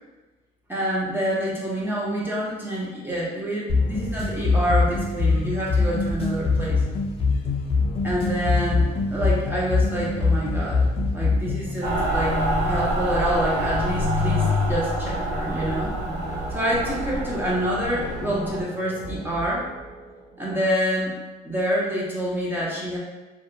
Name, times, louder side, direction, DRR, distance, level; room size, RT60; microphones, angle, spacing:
voice 1, 0.7-6.8 8.0-8.8 9.1-10.8 11.1-12.4 12.7-15.9 16.5-19.7 20.4-21.2 21.4-23.0, equal, 10° right, -5 dB, 0.6 m, -27 dB
sound 1, 3.7-11.7, left 3 dB, 35° left, 0.4 m, -23 dB
Mechanical fan, 11.8-18.6, equal, 85° right, 0.7 m, -26 dB
sound 2, 15.0-20.7, right 2 dB, 55° right, 0.8 m, -40 dB
2.7 x 2.1 x 2.5 m, 1.2 s
cardioid pair, 110°, 17 cm